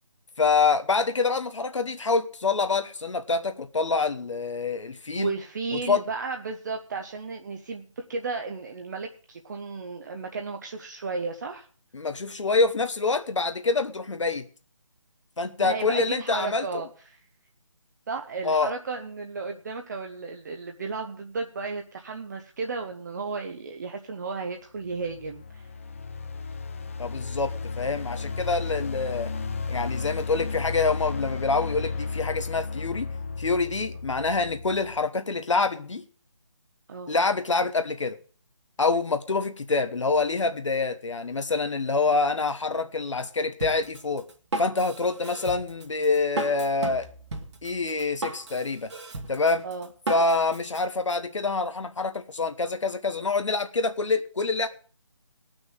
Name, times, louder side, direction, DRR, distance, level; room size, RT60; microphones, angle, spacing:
voice 1, 0.4-5.3 5.9-6.0 11.9-14.5 15.4-16.8 18.4-18.7 27.0-29.3 29.7-33.1 33.4-36.0 37.1-38.1 38.8-44.3 44.6-47.1 47.6-48.9 49.3-49.6 50.1-54.7, left 4 dB, 70° left, 8 dB, 1.2 m, -26 dB
voice 2, 5.2-11.7 15.6-17.2 18.1-25.7 36.9-37.1 49.6-49.9, right 4 dB, 35° right, 4 dB, 0.9 m, -34 dB
sound 1, 24.8-35.1, left 4 dB, 25° left, 0.5 m, -34 dB
Drum kit, 43.6-50.8, right 2 dB, 65° right, 2.4 m, -35 dB
17.5 x 6.2 x 6.3 m, 0.42 s
figure-of-eight pair, 160°, 16 cm